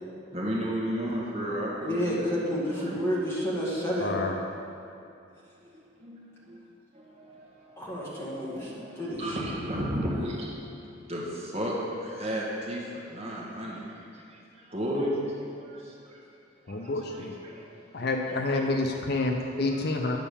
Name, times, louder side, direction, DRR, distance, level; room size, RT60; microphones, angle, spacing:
voice 1, 0.3-2.3 2.7-3.0 5.6-5.7 6.0-6.6 6.9-7.9 8.3-16.2 16.7-17.7 18.1-18.8 19.2-19.3 19.7-19.8, equal, 35° right, -4 dB, 1.6 m, -34 dB
voice 2, 1.8-4.1 7.8-9.4, equal, 15° left, -7 dB, 2.1 m, -30 dB
voice 3, 4.0-4.4 16.7-17.3 17.9-20.2, left 2 dB, 55° left, 3 dB, 0.6 m, -28 dB
9.2 x 5.7 x 6.9 m, 2.6 s
head